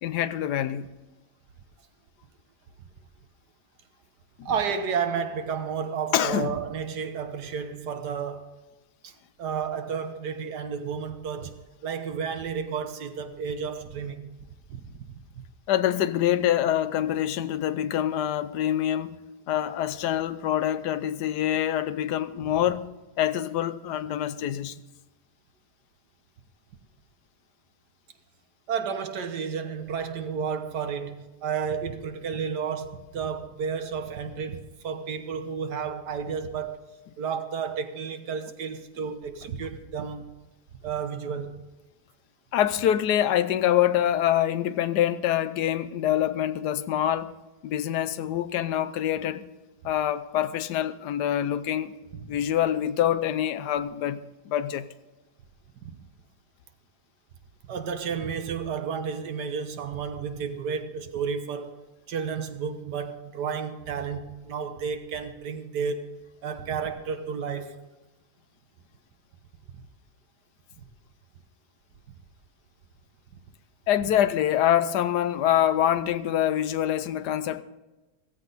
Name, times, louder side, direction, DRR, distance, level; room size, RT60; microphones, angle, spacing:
voice 1, 0.0-0.9 4.4-4.5 6.1-6.5 15.7-19.2 19.5-22.9 23.2-24.8 42.5-47.3 47.6-49.5 49.8-52.0 52.3-54.9 73.9-77.6, left 11 dB, 90° left, 1.3 m, -25 dB
voice 2, 4.4-8.5 9.0-9.1 9.4-14.3 14.7-15.2 28.7-36.8 37.2-40.3 40.8-41.6 52.1-52.3 55.8-56.0 57.7-61.8 62.1-66.1 66.4-67.8 69.7-69.8, right 6 dB, 90° right, 1.7 m, -32 dB
15.5 x 15.5 x 4.0 m
omnidirectional pair, 1.7 m